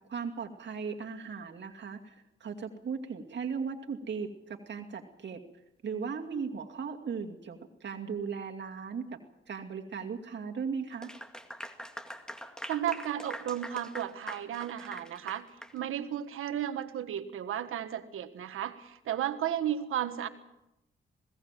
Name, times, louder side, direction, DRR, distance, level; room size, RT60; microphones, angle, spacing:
voice 1, 0.0-5.4 5.8-9.2 9.5-11.1, right 6 dB, 60° right, 2 dB, 2.5 m, -37 dB
Clapping / Applause, 10.9-15.8, equal, 5° left, 2.0 m, -43 dB
voice 2, 12.7-15.5 15.7-20.3, right 10 dB, 85° right, 10 dB, 1.5 m, -34 dB
20.5 x 17.5 x 7.6 m, 0.88 s
cardioid pair, 70°, 21 cm